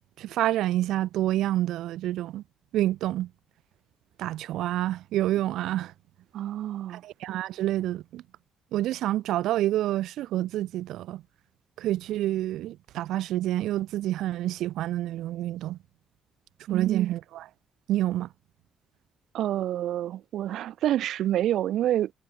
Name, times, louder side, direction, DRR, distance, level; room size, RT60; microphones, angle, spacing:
voice 1, 0.2-2.4 2.7-3.3 4.2-5.9 6.9-8.2 8.7-11.2 11.8-15.8 16.7-17.5 17.9-18.3, right 14 dB, 90° right, 0.9 m, -28 dB
voice 2, 6.3-7.0 16.7-17.1 19.3-22.1, right 12 dB, 65° right, 1.0 m, -28 dB
cardioid pair, 180°, 0 cm